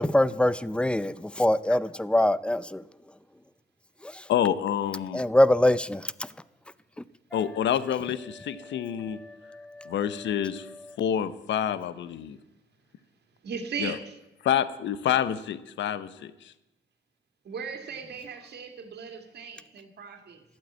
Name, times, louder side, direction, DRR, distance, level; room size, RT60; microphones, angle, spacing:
voice 1, 0.0-2.8 4.0-4.1 5.1-6.1 9.2-9.9, left 1 dB, 5° left, 0.5 m, -24 dB
voice 2, 4.3-5.2 7.3-9.2 9.9-10.7 11.0-12.4 13.8-14.0 14.4-16.5, left 9 dB, 65° left, 0.8 m, -28 dB
voice 3, 13.4-14.2 17.4-20.4, right 6 dB, 55° right, 2.2 m, -37 dB
12.5 x 8.6 x 8.1 m
cardioid pair, 90°, 20 cm